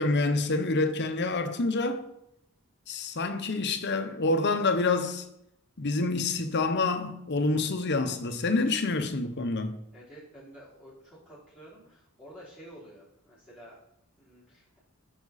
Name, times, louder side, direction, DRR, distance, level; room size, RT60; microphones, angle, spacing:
voice 1, 0.0-2.0 2.9-5.2 5.8-9.8, left 3 dB, 50° left, 0.8 m, -27 dB
voice 2, 9.9-13.8 14.2-14.8, right 1 dB, 5° right, 3.6 m, -50 dB
9.7 x 5.8 x 4.1 m
head